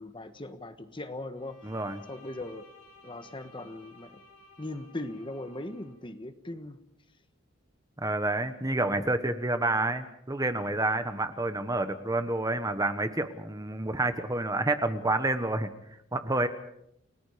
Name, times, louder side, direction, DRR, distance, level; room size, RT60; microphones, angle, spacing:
voice 1, 0.0-1.6 2.1-2.6 3.0-4.2 4.6-6.8, left 2 dB, 25° left, 9 dB, 1.3 m, -39 dB
Bowed string instrument, 1.3-6.0, left 2 dB, 85° left, 4.1 m, -56 dB
voice 2, 1.6-2.0 8.0-15.7 16.1-16.5, right 2 dB, 15° right, 9 dB, 1.2 m, -29 dB
29.5 x 19.0 x 5.1 m, 0.77 s
head